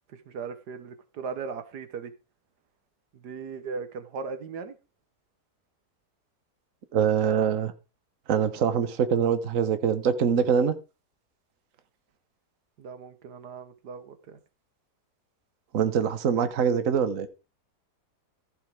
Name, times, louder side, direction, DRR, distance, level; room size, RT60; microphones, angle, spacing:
voice 1, 0.1-2.1 3.2-4.8 12.8-14.4, right 5 dB, 90° right, 1.8 m, -38 dB
voice 2, 6.9-7.7 8.3-10.7 15.7-17.3, right 7 dB, 55° right, 1.4 m, -24 dB
14.5 x 5.7 x 4.9 m
omnidirectional pair, 1.7 m